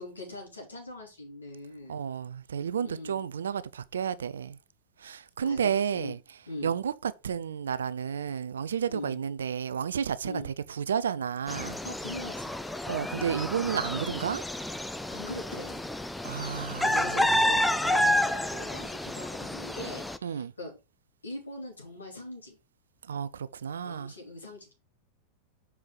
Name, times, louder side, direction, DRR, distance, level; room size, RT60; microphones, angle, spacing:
voice 1, 0.0-2.0 2.8-3.2 5.4-6.1 6.5-6.7 8.9-9.2 10.2-10.5 11.8-12.5 15.1-15.9 16.8-20.7 21.2-22.6 23.8-24.7, left 1 dB, 75° left, 3.1 m, -41 dB
voice 2, 1.9-4.6 5.0-6.2 6.6-11.8 12.8-14.4 16.2-17.2 20.2-20.5 23.1-24.1, right 7 dB, 65° right, 0.5 m, -31 dB
sound 1, 11.5-20.2, left 1 dB, 5° left, 0.4 m, -29 dB
6.2 x 4.8 x 4.6 m
figure-of-eight pair, 90°, 0 cm